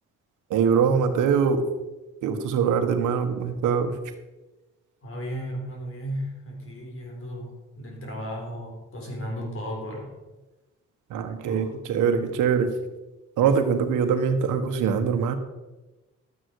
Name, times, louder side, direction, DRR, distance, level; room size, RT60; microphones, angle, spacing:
voice 1, 0.5-1.6 2.2-3.9 11.1-12.7 13.4-15.4, right 6 dB, 85° right, 7 dB, 1.3 m, -23 dB
voice 2, 5.0-10.1 11.4-11.7, equal, 45° left, 0 dB, 4.5 m, -35 dB
12.0 x 9.1 x 4.7 m, 1.1 s
cardioid pair, 90°, 30 cm